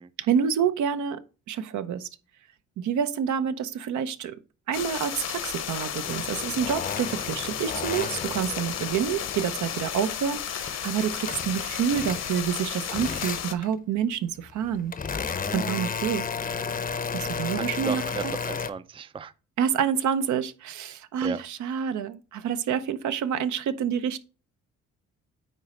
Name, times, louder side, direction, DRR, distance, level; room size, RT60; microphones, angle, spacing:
voice 1, 0.2-1.2 1.5-2.1 2.8-4.3 4.7-14.9 15.5-16.3 17.1-18.0 19.6-24.2, right 8 dB, 70° right, 0.7 m, -28 dB
sound 1, 4.7-13.5, left 9 dB, 60° left, 0.9 m, -33 dB
sound 2, 6.0-10.1 10.5-12.6 12.9-13.7 14.4-18.7, left 5 dB, 30° left, 0.7 m, -33 dB
voice 2, 17.5-19.3 20.9-21.4, right 6 dB, 20° right, 0.4 m, -35 dB
9.2 x 3.2 x 5.0 m
cardioid pair, 90°, 30 cm